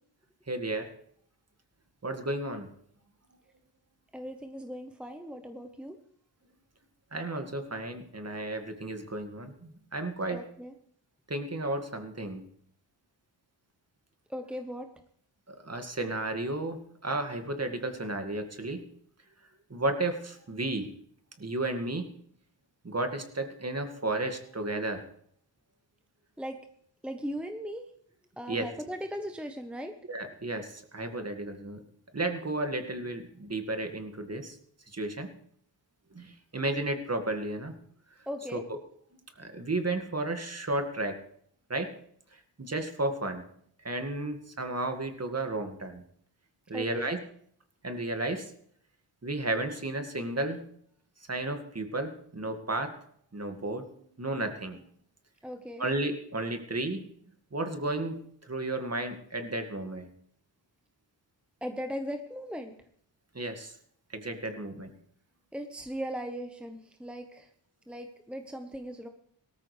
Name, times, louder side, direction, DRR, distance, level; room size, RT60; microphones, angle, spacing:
voice 1, 0.5-0.9 2.0-2.7 7.1-10.4 11.3-12.4 15.5-18.8 19.7-20.9 21.4-22.1 22.8-25.0 28.5-28.6 30.1-31.8 32.1-34.6 34.9-35.3 36.1-37.7 38.5-38.6 39.4-41.1 41.7-41.9 42.3-43.4 43.8-46.0 46.7-47.2 47.8-48.5 49.2-50.6 51.3-52.9 53.3-53.9 54.2-54.8 55.8-57.0 57.5-60.1 63.3-63.8 64.1-64.9, right 2 dB, 30° right, 6 dB, 2.0 m, -33 dB
voice 2, 4.1-6.0 10.3-10.7 14.3-14.9 26.4-26.6 27.0-27.9 28.4-29.9 38.3-38.6 46.7-47.2 55.4-55.9 61.6-62.9 65.5-67.5 67.9-69.1, equal, ahead, 6 dB, 1.1 m, -38 dB
17.5 x 13.5 x 3.3 m, 0.65 s
cardioid pair, 50°, 47 cm